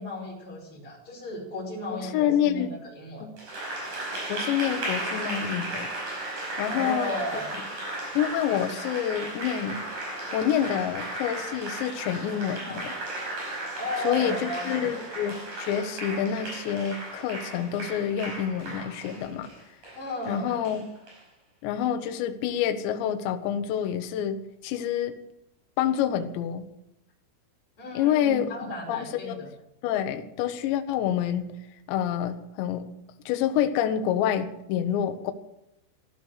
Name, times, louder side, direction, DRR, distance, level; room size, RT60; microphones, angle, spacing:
voice 1, 0.0-3.3 6.7-7.5 12.6-12.8 13.8-14.9 19.9-20.6 27.8-29.5, left 1 dB, 25° left, -2 dB, 5.6 m, -35 dB
voice 2, 1.9-2.7 3.2-3.3 4.3-5.9 6.6-7.2 8.1-9.8 10.3-12.9 14.0-19.5 20.3-20.8 21.6-25.1 25.8-26.6 27.9-29.5 29.8-31.5 31.9-32.9 33.3-35.3, left 9 dB, 75° left, 7 dB, 3.0 m, -27 dB
Applause, 3.4-21.2, right 2 dB, 40° right, 6.6 m, -35 dB
15.5 x 13.0 x 6.5 m, 0.81 s
omnidirectional pair, 5.9 m